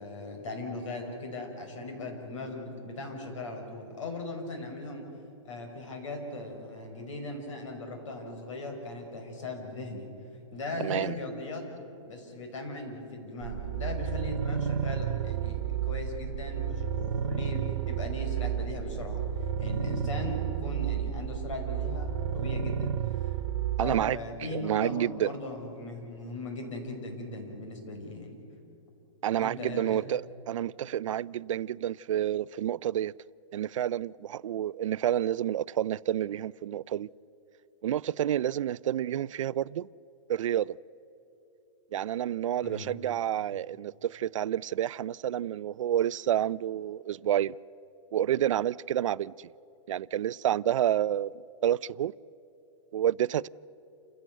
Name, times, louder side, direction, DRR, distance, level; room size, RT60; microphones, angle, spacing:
voice 1, 0.0-5.0 5.4-10.1 10.5-11.6 12.1-15.6 15.9-23.4 23.8-28.4 29.4-30.0 42.6-43.0, left 2 dB, 75° left, 5.5 m, -38 dB
voice 2, 10.8-11.2 23.8-25.4 29.2-33.1 33.5-37.1 37.8-39.9 40.3-40.8 41.9-47.6 48.1-49.5 49.9-51.3 51.6-52.1 52.9-53.5, right 11 dB, 80° right, 0.4 m, -29 dB
sound 1, 13.4-24.1, right 8 dB, 60° right, 0.8 m, -31 dB
28.5 x 16.0 x 7.8 m
hypercardioid pair, 175°, 16 cm